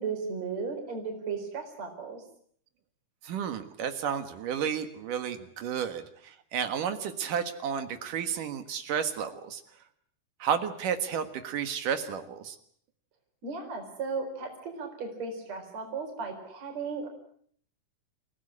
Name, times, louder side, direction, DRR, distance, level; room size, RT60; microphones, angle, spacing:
voice 1, 0.0-2.2 13.4-17.1, right 5 dB, 55° right, 4 dB, 5.5 m, -35 dB
voice 2, 3.2-9.6 10.4-12.6, right 8 dB, 75° right, 9 dB, 3.2 m, -32 dB
28.5 x 17.0 x 9.9 m, 0.64 s
omnidirectional pair, 3.8 m